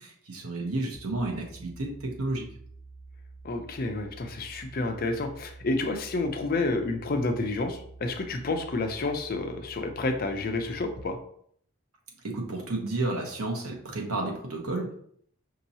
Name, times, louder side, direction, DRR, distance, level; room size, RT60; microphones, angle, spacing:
voice 1, 0.0-2.5 12.2-14.9, right 2 dB, 80° right, 1 dB, 1.0 m, -31 dB
sound 1, 0.9-11.0, right 3 dB, 45° right, 1.1 m, -48 dB
voice 2, 3.4-11.2, left 2 dB, 40° left, 6 dB, 0.5 m, -30 dB
5.3 x 2.8 x 2.7 m, 0.64 s
head